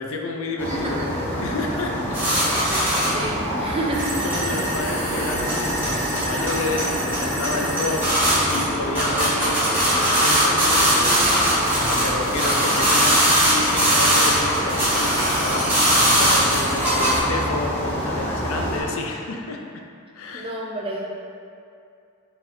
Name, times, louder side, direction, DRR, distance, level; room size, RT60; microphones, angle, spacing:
voice 1, 0.0-2.2 3.6-3.8 4.2-11.2 11.7-19.8 20.1-20.6, left 3 dB, 65° left, 2 dB, 0.4 m, -30 dB
sound 1, 0.6-18.8, equal, 10° left, 0.7 m, -27 dB
sound 2, 2.1-3.2 3.6-3.7 3.9-8.6 8.9-17.2, equal, 10° right, 1.5 m, -21 dB
voice 2, 2.6-4.1 20.3-21.1, right 1 dB, 25° right, -1 dB, 0.4 m, -30 dB
4.3 x 4.0 x 2.6 m, 2.5 s
head